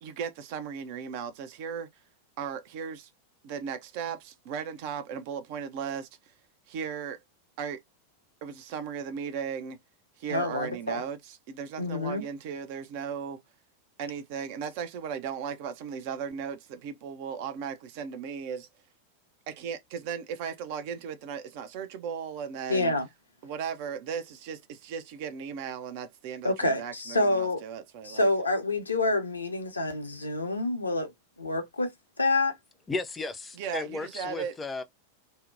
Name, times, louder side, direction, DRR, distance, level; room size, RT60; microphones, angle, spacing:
voice 1, 0.0-1.9 2.4-3.1 3.4-6.1 6.7-7.2 7.6-7.8 8.4-9.8 10.2-13.4 14.0-18.7 19.5-22.9 23.4-28.3 33.6-34.6, right 7 dB, 45° right, 0.5 m, -36 dB
voice 2, 10.3-11.0 11.8-12.2 22.7-23.1 26.4-27.6 28.0-31.1 31.4-31.9 32.2-32.5, left 2 dB, 80° left, 0.7 m, -27 dB
voice 3, 32.9-34.8, left 3 dB, 15° left, 0.4 m, -34 dB
2.7 x 2.1 x 2.4 m
figure-of-eight pair, 90°, 0 cm